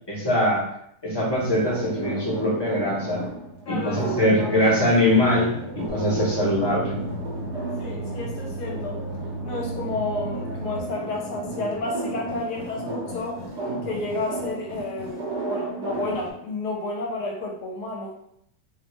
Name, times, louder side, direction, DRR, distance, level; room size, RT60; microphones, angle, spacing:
voice 1, 0.1-0.6 1.0-3.2 3.7-7.0, left 1 dB, 25° left, -7 dB, 0.5 m, -22 dB
sound 1, 1.4-16.3, right 2 dB, 85° right, 1.3 m, -33 dB
voice 2, 3.7-4.6 7.8-9.0 9.4-13.4 13.8-18.2, left 2 dB, 80° left, -1 dB, 1.2 m, -31 dB
sound 2, 5.9-10.8, right 2 dB, 65° right, 0.7 m, -35 dB
3.1 x 2.1 x 3.0 m, 0.73 s
omnidirectional pair, 1.8 m